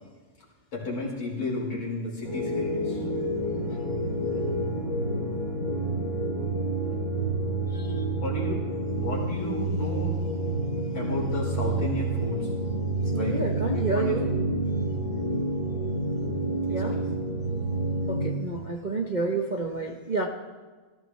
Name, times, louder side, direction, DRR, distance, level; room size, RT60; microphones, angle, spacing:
voice 1, 0.7-3.0 8.2-8.6 8.9-10.2 10.9-12.5 13.2-13.4 13.6-14.2 16.7-17.0, left 2 dB, 90° left, -5 dB, 5.5 m, -33 dB
sound 1, 2.2-18.3, right 2 dB, 40° left, 4.0 m, -29 dB
voice 2, 7.7-8.0 13.1-14.3 16.7-17.0 18.1-20.3, right 3 dB, 65° right, 1 dB, 0.4 m, -29 dB
20.0 x 15.0 x 3.2 m, 1.4 s
omnidirectional pair, 2.3 m